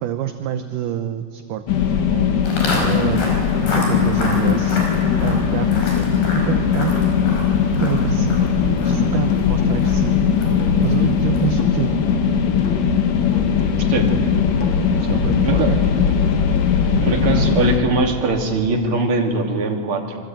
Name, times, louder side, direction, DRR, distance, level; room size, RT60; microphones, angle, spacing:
voice 1, 0.0-2.3 2.7-4.9 5.2-6.1 6.3-7.1 7.8-8.5 8.8-10.3 10.8-11.9 15.1-16.1, right 10 dB, 70° right, 8 dB, 2.3 m, -27 dB
sound 1, 1.7-17.8, left 7 dB, 65° left, 3.2 m, -19 dB
Walk footsteps, 2.4-11.7, left 2 dB, 85° left, 7.1 m, -30 dB
sound 2, 8.6-8.9 9.3-13.0 13.3-16.6, left 6 dB, 40° left, 2.2 m, -37 dB
voice 2, 13.8-14.2 15.1-15.8 17.0-20.2, right 2 dB, 40° right, 2 dB, 3.2 m, -22 dB
27.0 x 24.0 x 9.1 m, 2.1 s
omnidirectional pair, 4.2 m